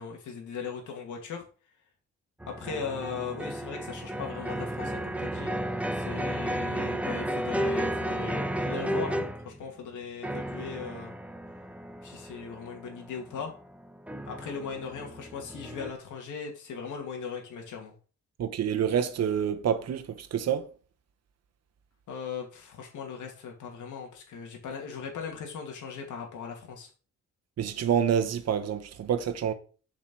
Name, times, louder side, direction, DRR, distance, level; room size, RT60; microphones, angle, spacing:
voice 1, 0.0-1.4 2.5-5.5 5.9-11.2 12.0-13.5 14.3-17.9 22.1-26.9, left 6 dB, 85° left, 2.2 m, -38 dB
sound 1, 2.4-9.6 10.2-15.9, right 1 dB, 5° right, 0.7 m, -33 dB
voice 2, 18.4-20.7 27.6-29.5, right 8 dB, 55° right, 1.1 m, -27 dB
7.4 x 5.0 x 6.1 m
cardioid pair, 120°, 30 cm